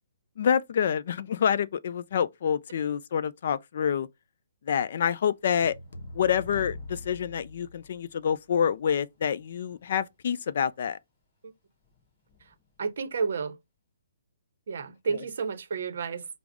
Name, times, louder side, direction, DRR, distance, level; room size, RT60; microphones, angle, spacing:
voice 1, 0.4-4.1 4.7-5.8 6.1-11.0, left 8 dB, 50° left, 0.3 m, -27 dB
Thunder / Rain, 5.0-13.3, left 4 dB, 25° left, 2.6 m, -60 dB
sound 1, 5.6-8.2, left 2 dB, 90° left, 0.6 m, -42 dB
voice 2, 12.4-13.6 14.7-16.3, right 5 dB, 55° right, 0.6 m, -31 dB
4.9 x 2.0 x 3.5 m
hypercardioid pair, 170°, 0 cm